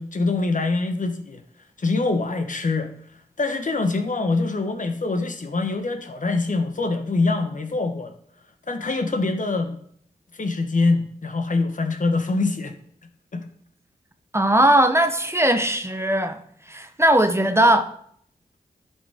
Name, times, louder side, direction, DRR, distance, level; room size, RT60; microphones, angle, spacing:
voice 1, 0.0-1.4 1.8-2.9 3.4-8.1 8.7-9.8 10.3-12.7 13.3-13.4, left 3 dB, 50° left, 1.1 m, -24 dB
voice 2, 14.3-16.4 16.7-17.9, right 1 dB, 15° right, 0.9 m, -19 dB
10.5 x 5.5 x 3.6 m
cardioid pair, 40°, 17 cm